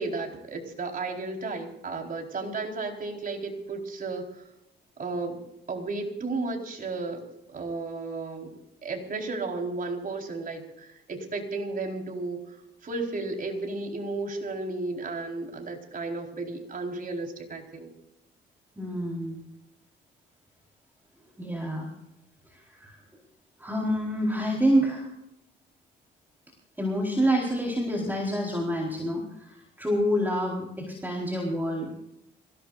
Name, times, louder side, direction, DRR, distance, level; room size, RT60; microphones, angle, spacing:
voice 1, 0.0-4.4 5.0-5.4 5.7-8.5 8.8-12.5 12.8-17.9, right 3 dB, 45° right, 2 dB, 4.4 m, -33 dB
voice 2, 18.8-19.4 21.4-21.9 22.5-23.0 23.6-25.1 26.8-31.9, equal, 10° right, -1 dB, 4.2 m, -27 dB
26.5 x 17.0 x 2.6 m, 0.84 s
cardioid pair, 90°, 20 cm